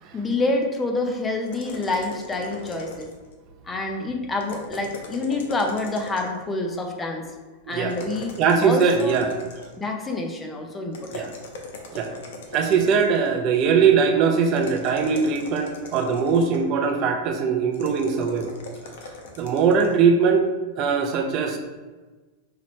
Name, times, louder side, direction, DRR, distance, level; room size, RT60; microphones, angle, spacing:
voice 1, 0.1-3.1 3.6-7.2 7.7-9.2 9.8-11.3, left 2 dB, 15° left, 3 dB, 0.6 m, -27 dB
sound 1, 1.5-3.3 4.4-6.4 7.9-9.9 10.9-13.3 14.5-16.7 17.7-19.9, left 2 dB, 75° left, 0.8 m, -40 dB
voice 2, 7.7-8.0 8.4-9.4 11.1-11.3 11.9-12.1 12.5-18.6 19.4-20.5 20.8-21.6, right 6 dB, 40° right, 4 dB, 0.6 m, -21 dB
5.7 x 2.9 x 3.1 m, 1.3 s
supercardioid pair, 140°, 0 cm